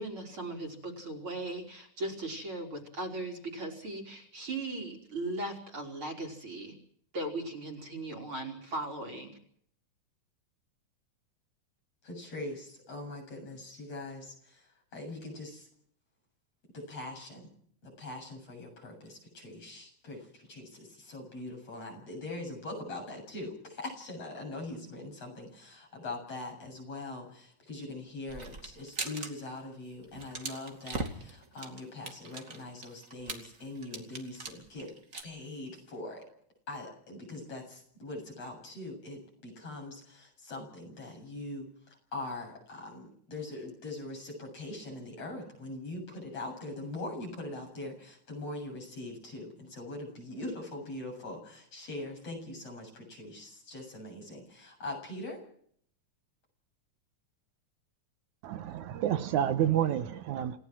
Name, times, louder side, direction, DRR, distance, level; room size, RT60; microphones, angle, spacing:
voice 1, 0.0-6.7 7.1-9.3, right 2 dB, 45° right, 6 dB, 4.6 m, -38 dB
voice 2, 12.0-15.7 16.7-17.5 17.8-34.9 35.2-36.3 36.7-55.4, left 2 dB, 55° left, 1 dB, 8.7 m, -42 dB
sound 1, 28.3-29.3 29.6-29.7 30.0-35.2, right 3 dB, 30° right, 2.5 m, -40 dB
voice 3, 58.4-60.6, right 10 dB, 75° right, 10 dB, 2.4 m, -29 dB
28.0 x 16.5 x 6.2 m, 0.64 s
omnidirectional pair, 3.5 m